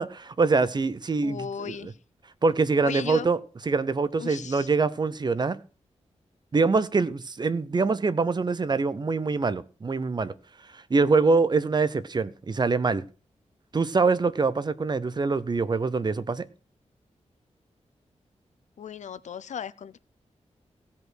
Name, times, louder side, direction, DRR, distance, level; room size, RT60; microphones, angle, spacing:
voice 1, 0.0-1.9 2.4-3.4 3.7-5.6 6.5-10.3 10.7-13.0 13.7-16.5, right 4 dB, 35° right, 0.7 m, -24 dB
voice 2, 1.2-1.9 2.8-3.3 4.2-4.7 18.8-20.0, left 7 dB, 85° left, 0.6 m, -36 dB
16.0 x 5.4 x 6.1 m
wide cardioid pair, 120°, 12 cm